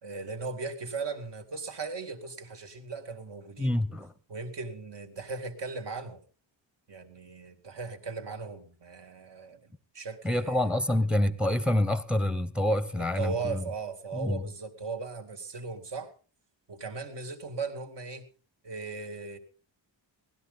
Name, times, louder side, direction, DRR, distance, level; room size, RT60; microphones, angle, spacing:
voice 1, 0.0-3.8 4.3-6.2 6.9-11.1 13.0-16.1 16.7-18.3 18.6-19.4, right 4 dB, 60° right, 2.2 m, -38 dB
voice 2, 3.6-4.1 10.2-13.7 14.1-14.4, left 1 dB, ahead, 0.8 m, -27 dB
18.5 x 12.5 x 3.9 m
wide cardioid pair, 145°, 46 cm